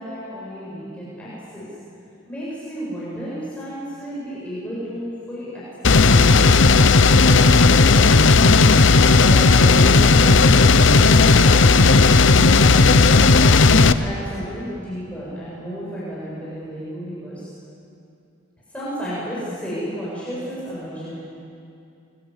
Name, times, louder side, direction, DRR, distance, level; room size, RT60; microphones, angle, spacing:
voice 1, 0.0-1.7 2.3-6.4 7.2-8.5 9.0-17.5 18.7-21.2, equal, 5° left, -9 dB, 7.7 m, -32 dB
sound 1, 5.8-13.9, left 3 dB, 65° left, 0.8 m, -13 dB
29.5 x 23.0 x 8.2 m, 2.6 s
head